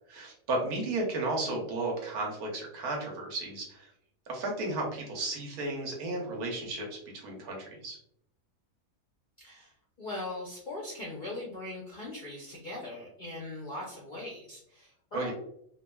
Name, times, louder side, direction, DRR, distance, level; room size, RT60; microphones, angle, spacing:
voice 1, 0.1-3.9 4.3-6.9 7.1-8.0 15.1-15.3, right 2 dB, 85° right, -1 dB, 1.3 m, -33 dB
voice 2, 9.4-9.7 10.0-15.3, left 2 dB, 60° left, -4 dB, 0.5 m, -40 dB
3.1 x 2.3 x 2.2 m, 0.70 s
omnidirectional pair, 1.6 m